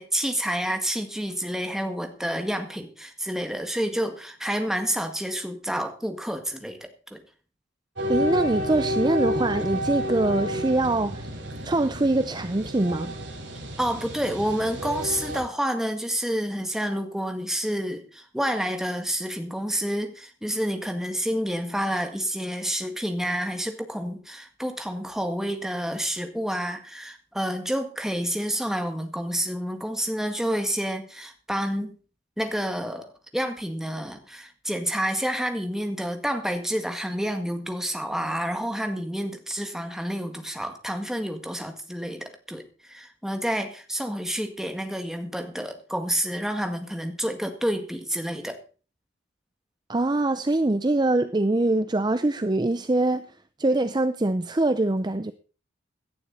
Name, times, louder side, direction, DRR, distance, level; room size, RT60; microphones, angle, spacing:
voice 1, 0.0-7.2 13.8-32.0 32.4-48.6, equal, ahead, 1.9 m, -29 dB
sound 1, 8.0-15.4, equal, 75° right, 5.3 m, -30 dB
voice 2, 8.1-11.3 11.6-13.1 49.9-53.2 53.6-55.3, right 2 dB, 20° right, 0.6 m, -23 dB
17.0 x 11.5 x 4.1 m
head